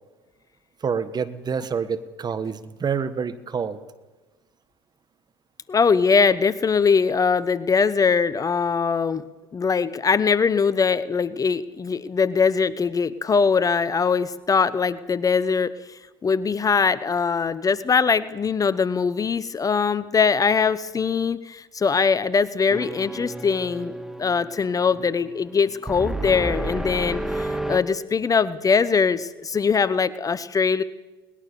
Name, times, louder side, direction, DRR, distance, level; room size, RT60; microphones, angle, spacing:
voice 1, 0.8-3.8, right 6 dB, 35° right, 13 dB, 1.6 m, -27 dB
voice 2, 5.7-9.2 9.5-30.8, left 5 dB, 30° left, 16 dB, 1.0 m, -22 dB
sound 1, 22.7-27.8, right 1 dB, 5° right, 2.0 m, -31 dB
21.5 x 20.0 x 7.0 m, 1.2 s
hypercardioid pair, 75°, 13 cm